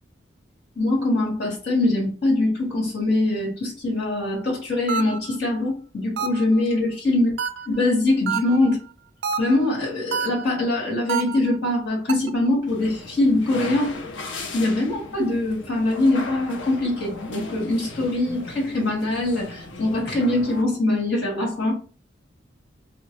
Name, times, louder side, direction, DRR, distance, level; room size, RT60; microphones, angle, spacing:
voice 1, 0.7-7.3 7.7-8.8 9.4-14.0 14.5-21.7, left 2 dB, 60° left, -4 dB, 1.7 m, -23 dB
sound 1, 4.9-5.4 6.2-6.6 7.4-7.8 8.3-8.7 9.2-9.7 10.1-10.6 11.1-11.6 12.1-12.5, right 6 dB, 70° right, 0.4 m, -28 dB
sound 2, 12.7-20.6, left 3 dB, 80° left, 0.6 m, -37 dB
3.7 x 2.1 x 3.0 m, 0.36 s
head